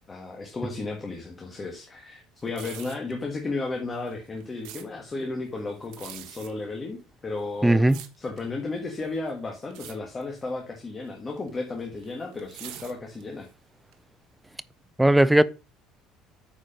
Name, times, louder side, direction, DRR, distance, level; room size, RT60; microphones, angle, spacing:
voice 1, 0.1-7.8 8.2-13.5, left 3 dB, 15° left, 1.5 m, -34 dB
sound 1, 2.4-3.1 3.9-4.9 5.8-6.5 7.3-8.5 8.9-9.3 9.6-9.9 10.2-10.5 11.4-13.5 13.9-14.0, right 11 dB, 70° right, 1.5 m, -44 dB
voice 2, 7.6-8.0 15.0-15.4, right 1 dB, 5° right, 0.4 m, -17 dB
8.8 x 4.8 x 5.2 m
cardioid pair, 165°, 0 cm